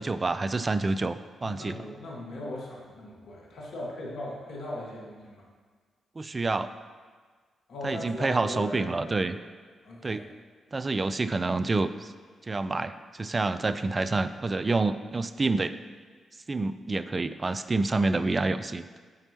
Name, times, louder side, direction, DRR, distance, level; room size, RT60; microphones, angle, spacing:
voice 1, 0.0-1.8 6.2-6.7 7.8-9.4 10.0-10.2 10.7-12.1 12.5-12.9 13.2-15.8 16.5-19.0, right 3 dB, 35° right, 12 dB, 0.4 m, -28 dB
voice 2, 1.4-5.4 7.7-9.3 9.8-10.3, left 1 dB, 70° left, -4 dB, 1.5 m, -39 dB
12.5 x 4.5 x 2.8 m, 1.5 s
hypercardioid pair, 40°, 0 cm